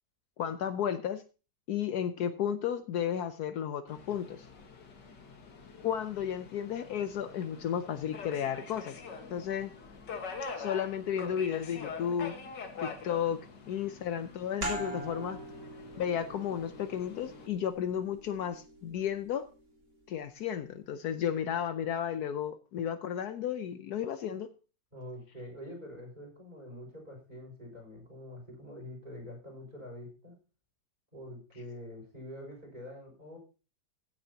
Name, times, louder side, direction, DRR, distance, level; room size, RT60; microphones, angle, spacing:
voice 1, 0.4-1.2 1.7-4.4 5.8-9.0 9.3-9.7 10.6-12.3 12.8-13.4 13.7-15.4 16.0-19.5 20.1-24.5, left 9 dB, 70° left, 10 dB, 1.2 m, -33 dB
Subway metro underground, 3.9-17.5, left 5 dB, 90° left, 2.2 m, -45 dB
sound 1, 14.6-19.9, right 2 dB, 80° right, 4.0 m, -43 dB
voice 2, 24.9-30.3 31.1-33.4, left 1 dB, 25° right, -1 dB, 6.4 m, -46 dB
15.5 x 9.6 x 2.8 m, 0.33 s
omnidirectional pair, 1.8 m